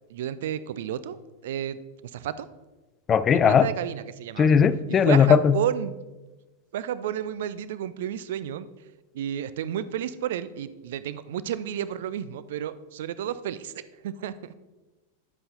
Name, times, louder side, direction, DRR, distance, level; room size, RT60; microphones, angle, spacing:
voice 1, 0.1-1.2 1.4-1.8 2.1-2.5 3.3-4.6 5.0-5.9 6.7-8.7 9.1-13.7 14.0-14.5, right 10 dB, 55° right, 15 dB, 0.3 m, -31 dB
voice 2, 3.1-3.7 4.4-5.6, left 7 dB, 25° left, 15 dB, 0.3 m, -18 dB
9.4 x 7.7 x 2.7 m, 1.1 s
figure-of-eight pair, 90°, 0 cm